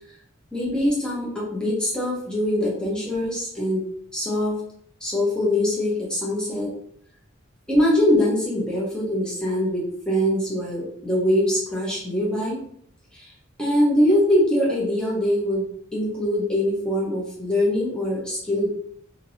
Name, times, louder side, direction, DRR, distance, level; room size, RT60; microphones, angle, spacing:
voice 1, 0.5-3.8 4.1-4.5 5.0-6.7 7.7-12.6 13.1-13.3 13.6-15.6 15.9-18.7, left 1 dB, 5° left, -5 dB, 0.9 m, -23 dB
2.7 x 2.7 x 2.8 m, 0.64 s
head